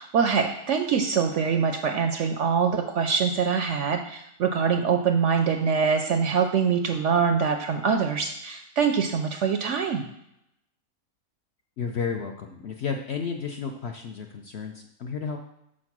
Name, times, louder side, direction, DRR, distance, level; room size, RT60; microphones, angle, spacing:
voice 1, 0.0-10.1, right 6 dB, 70° right, 5 dB, 0.7 m, -24 dB
voice 2, 11.8-15.4, left 6 dB, 60° left, 3 dB, 0.7 m, -32 dB
6.4 x 4.4 x 6.0 m, 0.80 s
omnidirectional pair, 1.6 m